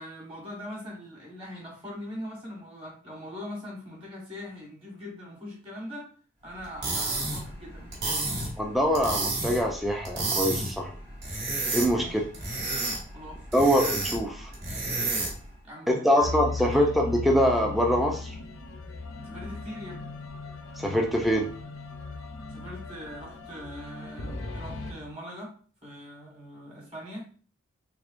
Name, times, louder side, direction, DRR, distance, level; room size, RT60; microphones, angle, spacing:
voice 1, 0.0-6.1 6.4-8.3 12.0-12.3 13.1-13.6 15.6-16.9 19.2-20.2 22.5-25.5 25.8-27.2, equal, 25° right, -2 dB, 1.3 m, -42 dB
sound 1, 6.6-15.5, right 2 dB, 55° right, 1.3 m, -31 dB
voice 2, 8.6-10.9 11.7-12.2 13.5-14.5 15.9-18.4 20.8-21.5, equal, ahead, 1 dB, 0.4 m, -24 dB
sound 2, 16.2-24.9, left 3 dB, 80° left, 0.6 m, -37 dB
3.5 x 3.4 x 2.5 m, 0.41 s
head